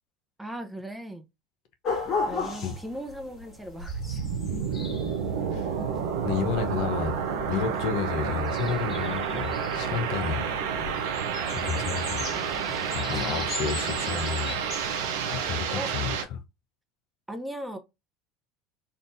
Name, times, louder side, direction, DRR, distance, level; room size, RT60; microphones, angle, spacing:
voice 1, 0.4-1.3 2.3-4.2 15.8-15.9 17.3-17.8, equal, 5° right, 0.8 m, -37 dB
sound 1, 1.8-15.5, left 4 dB, 40° left, 1.6 m, -38 dB
sound 2, 3.8-16.2, right 7 dB, 70° right, 0.6 m, -30 dB
voice 2, 6.2-7.2 7.5-10.5 11.5-12.4 12.9-14.6 15.3-16.4, left 7 dB, 60° left, 0.7 m, -31 dB
3.7 x 2.5 x 2.5 m
hypercardioid pair, 75°, 0 cm